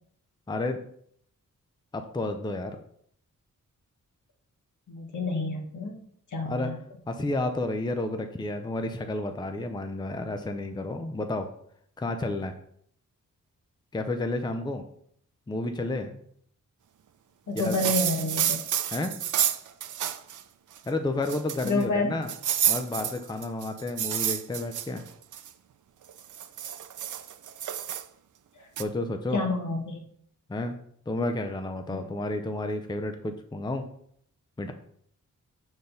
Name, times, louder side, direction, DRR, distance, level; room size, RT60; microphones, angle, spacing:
voice 1, 0.5-0.8 1.9-2.8 6.4-6.7 7.1-11.5 12.0-12.5 13.9-14.8 15.5-16.2 17.5-17.9 18.9-19.2 20.8-22.3 22.7-25.0 28.8-29.4 30.5-30.8 31.1-33.8 34.6-34.7, left 2 dB, 15° left, 6 dB, 0.5 m, -31 dB
voice 2, 4.9-6.0 6.3-6.8 17.5-18.6 21.6-22.1 28.6-28.7 29.3-30.0 31.9-32.1, left 2 dB, 65° left, 2 dB, 1.6 m, -29 dB
sound 1, 17.6-20.4 20.8-20.9 21.2-21.8 22.3-25.5 26.1-28.0 28.8-28.9, right 10 dB, 70° right, 0.5 m, -29 dB
6.8 x 4.0 x 5.5 m, 0.66 s
wide cardioid pair, 130°, 32 cm